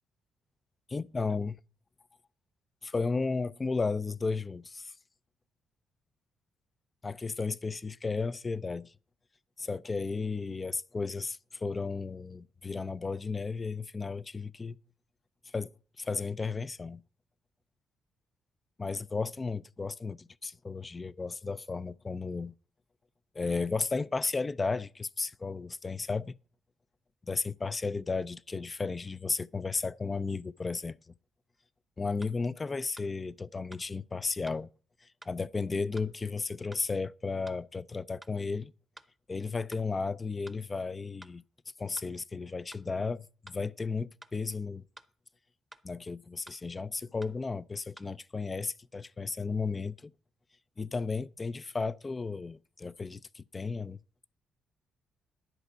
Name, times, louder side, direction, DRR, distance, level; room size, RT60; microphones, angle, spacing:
voice 1, 0.9-1.6 2.8-4.9 7.0-8.9 9.6-14.8 15.5-17.0 18.8-22.5 23.3-26.3 27.2-31.0 32.0-34.7 35.0-38.7 39.3-41.4 41.8-44.8 45.8-50.1 50.8-54.0, left 4 dB, 25° left, 0.4 m, -34 dB
sound 1, 31.5-31.6 32.2-32.4 33.0-33.1 33.7-33.9 34.5-34.6 35.2-35.3 36.0-36.1 36.7-36.8 37.5-37.6 38.2-38.3 39.0-39.1 39.7-39.9 40.5-40.6 41.2-41.4 42.0-42.1 42.7-42.9 43.5-43.6 44.2-44.3 45.0-45.1 45.7-45.9 46.5-46.6 47.2-47.3 48.0-48.1, right 1 dB, 5° right, 0.8 m, -51 dB
11.0 x 5.2 x 8.1 m
cardioid pair, 90°, 0 cm